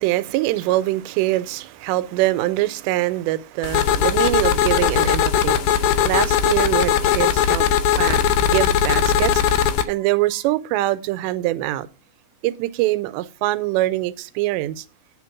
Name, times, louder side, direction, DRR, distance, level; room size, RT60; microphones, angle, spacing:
voice 1, 0.0-7.7 8.0-8.2 8.5-11.9 12.4-14.9, right 16 dB, 85° right, 2.7 m, -23 dB
sound 1, 3.6-9.8, left 9 dB, 85° left, 2.4 m, -19 dB
9.9 x 4.4 x 5.9 m
omnidirectional pair, 5.0 m